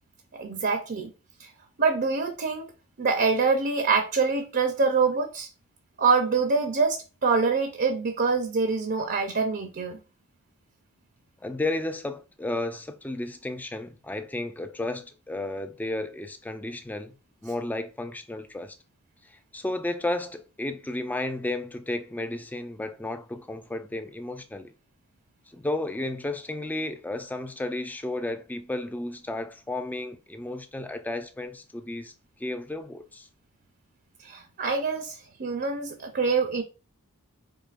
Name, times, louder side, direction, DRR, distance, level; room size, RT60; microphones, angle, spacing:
voice 1, 0.4-1.1 1.4-1.5 1.8-2.7 3.0-5.5 6.0-10.0 34.2-36.6, right 4 dB, 45° right, 0.6 m, -25 dB
voice 2, 11.4-17.1 17.4-18.8 19.2-24.7 25.5-32.1 32.4-33.3, left 2 dB, 10° left, 0.3 m, -33 dB
4.7 x 2.9 x 2.4 m
head